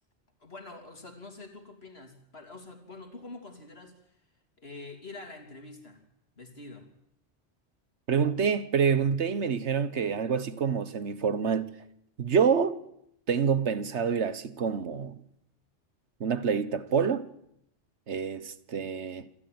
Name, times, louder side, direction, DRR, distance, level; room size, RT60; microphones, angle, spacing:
voice 1, 0.4-4.2 4.6-6.0 6.4-6.9, left 3 dB, 60° left, 3.5 m, -46 dB
voice 2, 8.1-11.7 12.2-12.8 13.3-15.2 16.2-17.2 18.1-19.3, right 6 dB, 70° right, 1.4 m, -27 dB
27.0 x 13.5 x 9.5 m
omnidirectional pair, 1.2 m